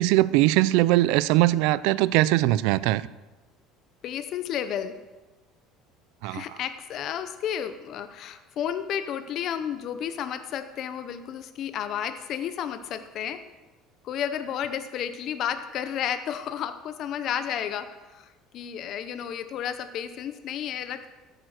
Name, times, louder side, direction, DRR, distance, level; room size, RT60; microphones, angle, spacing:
voice 1, 0.0-3.0 6.2-6.4, right 17 dB, 75° right, 0.4 m, -21 dB
voice 2, 4.0-5.0 6.2-13.4 14.0-21.1, left 9 dB, 45° left, 0.7 m, -32 dB
14.0 x 9.0 x 6.5 m
cardioid pair, 155°, 0 cm